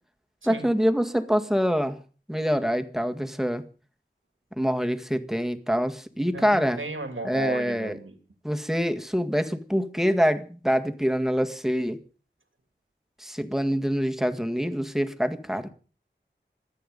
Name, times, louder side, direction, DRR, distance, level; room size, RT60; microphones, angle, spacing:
voice 1, 0.5-2.0 2.3-3.6 4.6-6.8 7.2-8.0 8.4-12.0 13.2-15.7, equal, ahead, 1.9 m, -25 dB
voice 2, 6.3-8.2, right 2 dB, 90° right, 3.0 m, -35 dB
26.5 x 9.4 x 5.4 m
wide cardioid pair, 55°, 20 cm